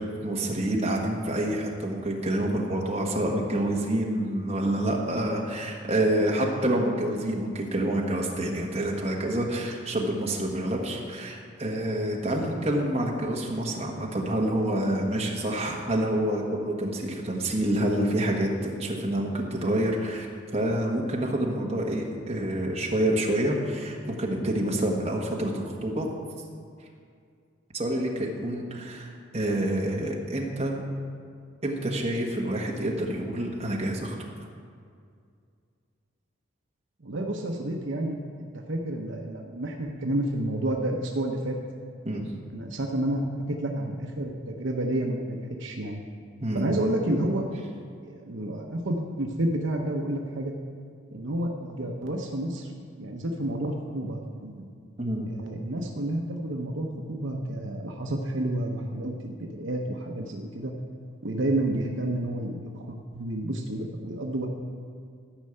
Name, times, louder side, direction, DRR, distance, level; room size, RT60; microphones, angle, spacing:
voice 1, 0.0-20.3 20.5-26.1 27.7-30.8 31.6-34.1 42.0-42.2 46.4-46.7 55.0-55.3, right 1 dB, 30° right, -2 dB, 1.4 m, -27 dB
voice 2, 37.0-41.6 42.5-46.0 46.5-47.4 48.1-50.5 51.1-52.7 53.0-54.7 55.3-60.7 61.2-64.5, right 1 dB, 65° right, 1 dB, 0.9 m, -30 dB
13.0 x 5.5 x 7.7 m, 2.2 s
head